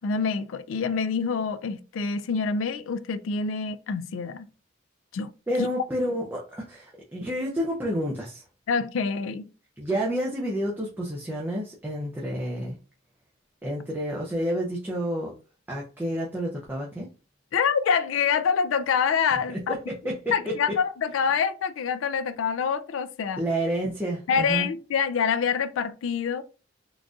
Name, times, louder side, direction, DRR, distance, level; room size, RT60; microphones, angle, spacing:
voice 1, 0.0-4.5 5.1-5.3 5.6-5.7 8.7-9.5 17.5-19.8 20.3-23.4 24.3-26.4, left 6 dB, 90° left, 0.3 m, -26 dB
voice 2, 5.5-8.4 9.8-12.8 13.6-15.3 15.7-17.1 19.7-20.5 23.4-24.7, equal, 10° right, 0.4 m, -29 dB
3.9 x 2.4 x 2.3 m
head